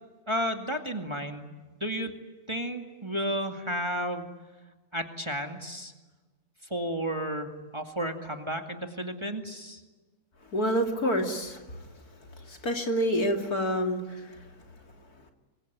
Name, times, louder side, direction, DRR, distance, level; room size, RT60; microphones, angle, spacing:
voice 1, 0.3-2.1 2.5-4.3 4.9-5.9 6.6-9.8, equal, 15° right, 4 dB, 2.3 m, -32 dB
voice 2, 10.5-11.6 12.4-14.4, equal, 65° left, 4 dB, 3.4 m, -28 dB
26.0 x 24.0 x 9.6 m, 1.2 s
omnidirectional pair, 1.7 m